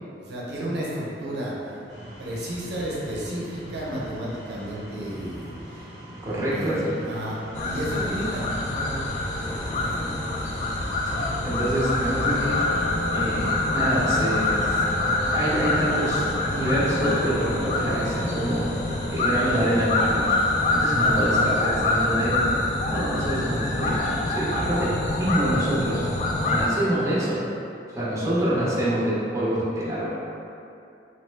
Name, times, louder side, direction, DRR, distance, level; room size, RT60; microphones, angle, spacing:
voice 1, 0.2-1.5 2.2-5.8 6.3-7.4 7.6-9.1 9.7-10.1 21.0-21.6 28.2-28.4, right 1 dB, 65° right, -6 dB, 0.5 m, -32 dB
sound 1, 1.9-21.6, equal, 20° left, 1.1 m, -41 dB
voice 2, 6.2-6.9 11.0-12.6 13.1-14.8 15.2-18.7 19.1-20.4 20.7-22.5 22.9-26.0 26.5-27.4 27.9-30.1, right 1 dB, 15° right, -8 dB, 0.6 m, -26 dB
sound 2, 7.6-26.7, left 2 dB, 40° left, 0.3 m, -25 dB
3.0 x 2.1 x 3.1 m, 2.6 s
head